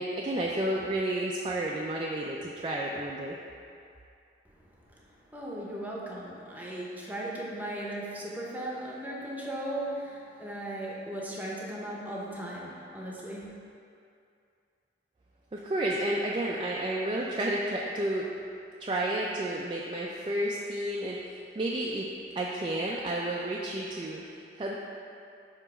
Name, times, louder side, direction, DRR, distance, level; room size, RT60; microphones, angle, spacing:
voice 1, 0.0-3.4 15.5-18.3 18.8-22.1 22.4-24.7, right 1 dB, 30° right, -4 dB, 0.3 m, -31 dB
voice 2, 4.5-13.5, right 1 dB, 10° right, -4 dB, 0.7 m, -37 dB
6.9 x 3.0 x 4.8 m, 2.5 s
head